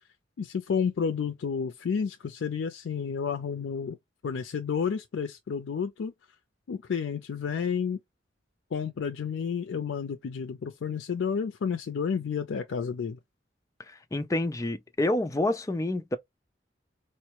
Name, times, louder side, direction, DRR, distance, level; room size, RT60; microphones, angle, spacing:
voice 1, 0.4-4.0 4.2-6.1 6.7-8.0 8.7-13.2, left 6 dB, 90° left, 0.4 m, -31 dB
voice 2, 13.9-16.2, left 1 dB, 15° left, 0.4 m, -28 dB
4.3 x 2.1 x 2.9 m
head